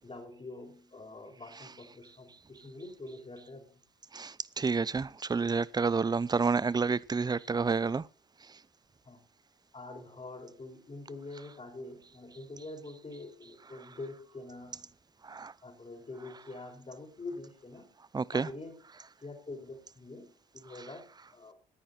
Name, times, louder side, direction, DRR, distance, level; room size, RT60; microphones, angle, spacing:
voice 1, 0.0-3.8 9.0-9.2 9.7-14.9 15.6-17.9 18.3-18.8 19.2-21.5, left 2 dB, 30° left, 5.1 m, -45 dB
voice 2, 4.1-8.0 15.2-15.5 18.1-18.5, right 4 dB, 20° right, 0.6 m, -29 dB
18.5 x 10.0 x 4.3 m
hypercardioid pair, 50°, 21 cm